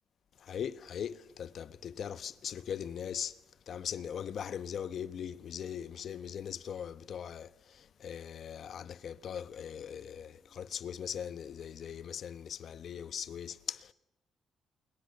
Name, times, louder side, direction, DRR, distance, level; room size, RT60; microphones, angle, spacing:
voice 1, 0.4-13.9, left 8 dB, 60° left, 1.1 m, -40 dB
27.5 x 22.0 x 6.7 m
cardioid pair, 90°, 0 cm